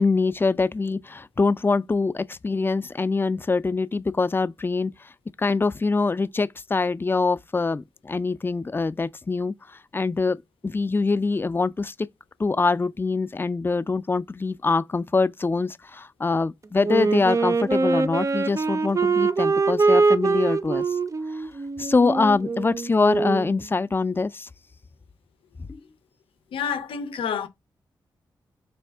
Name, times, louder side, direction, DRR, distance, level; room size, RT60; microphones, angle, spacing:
voice 1, 0.0-4.9 5.4-9.5 9.9-10.4 10.6-12.1 12.4-20.8 21.8-24.5 25.7-25.8, left 3 dB, 25° left, 0.3 m, -24 dB
Wind instrument woodwind instrument, 16.8-23.5, right 4 dB, 35° right, 0.4 m, -23 dB
voice 2, 26.5-27.5, left 7 dB, 85° left, 0.6 m, -28 dB
3.5 x 2.6 x 3.4 m
cardioid pair, 50°, 9 cm